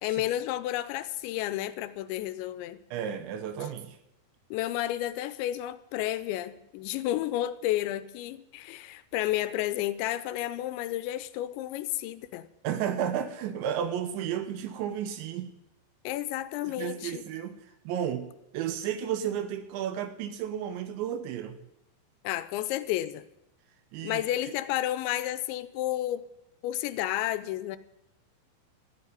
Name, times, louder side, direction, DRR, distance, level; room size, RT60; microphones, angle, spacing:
voice 1, 0.0-2.8 4.5-12.5 16.0-17.2 22.2-23.2 24.0-26.3 26.6-27.8, left 14 dB, 85° left, 13 dB, 2.9 m, -31 dB
voice 2, 2.9-4.0 12.6-15.6 16.7-21.6 23.9-24.2, right 9 dB, 80° right, 9 dB, 3.2 m, -33 dB
13.5 x 8.3 x 9.8 m, 0.85 s
omnidirectional pair, 5.3 m